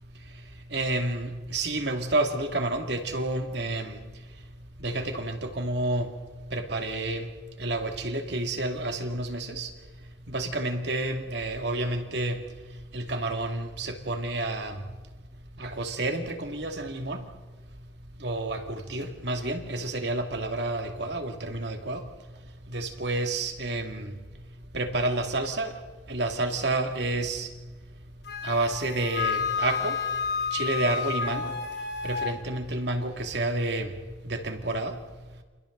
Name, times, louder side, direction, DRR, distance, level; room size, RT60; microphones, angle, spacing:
voice 1, 0.7-4.0 4.8-6.1 6.5-7.3 7.6-9.7 10.3-12.4 12.9-14.8 15.6-17.2 18.2-22.0 22.7-24.1 24.7-25.7 26.1-27.5 28.4-30.0 30.5-31.5 32.0-33.9 34.2-35.0, right 2 dB, 60° right, 2.4 m, -29 dB
Wind instrument woodwind instrument, 28.3-32.3, left 6 dB, 60° left, 2.7 m, -30 dB
29.5 x 28.5 x 4.0 m
head